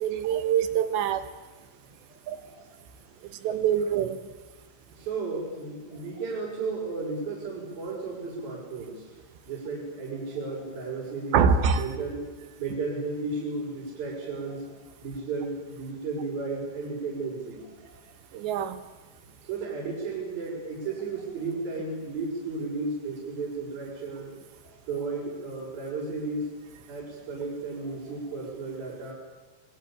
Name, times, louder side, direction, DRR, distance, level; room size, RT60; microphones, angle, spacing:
voice 1, 0.0-1.3 2.3-2.4 3.4-4.2 11.3-11.9 18.3-18.8, right 7 dB, 75° right, 10 dB, 3.4 m, -24 dB
voice 2, 2.1-2.7 3.3-3.5 4.9-9.1 9.5-12.2 12.6-18.0 19.5-24.3 24.6-26.5 26.9-29.1, right 3 dB, 50° right, -6 dB, 7.6 m, -34 dB
25.5 x 22.0 x 8.8 m, 1.3 s
omnidirectional pair, 5.3 m